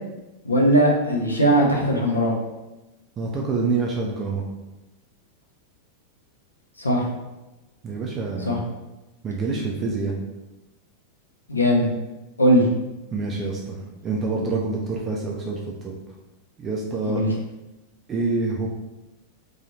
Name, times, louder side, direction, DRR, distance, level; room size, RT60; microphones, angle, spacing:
voice 1, 0.4-2.3 6.8-7.1 8.4-8.6 11.5-11.9 12.4-12.7 17.0-17.3, equal, 80° left, -1 dB, 0.5 m, -19 dB
voice 2, 3.2-4.4 7.8-8.6 9.2-10.2 13.1-13.8 14.0-15.9 16.6-17.2 18.1-18.7, right 3 dB, 25° right, -2 dB, 0.4 m, -26 dB
2.6 x 2.3 x 2.8 m, 1.0 s
figure-of-eight pair, 90°, 0 cm